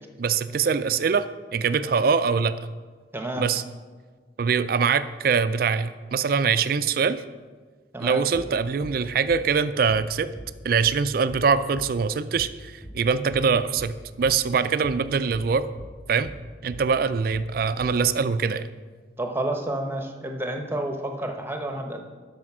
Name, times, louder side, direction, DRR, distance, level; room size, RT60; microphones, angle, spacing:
voice 1, 0.2-2.6 3.4-3.6 4.4-7.2 8.0-10.3 10.6-15.7 16.1-16.3 16.6-18.7, right 5 dB, 50° right, 13 dB, 0.4 m, -23 dB
voice 2, 3.1-3.5 7.9-8.2 19.2-22.0, right 1 dB, 10° right, 3 dB, 0.9 m, -30 dB
sound 1, 8.3-8.5 8.8-9.0 9.3-9.5 9.9-10.1 10.3-10.5 10.8-11.0 11.3-11.5 11.7-11.9 12.3-12.5 12.8-13.0 13.3-13.5 13.7-13.9 14.2-14.4 14.8-15.0 15.3-15.5 15.8-16.0 16.2-16.4 16.7-16.9 17.3-17.5 17.8-18.0, equal, 25° left, 2.2 m, -41 dB
12.5 x 5.1 x 6.1 m, 1.5 s
head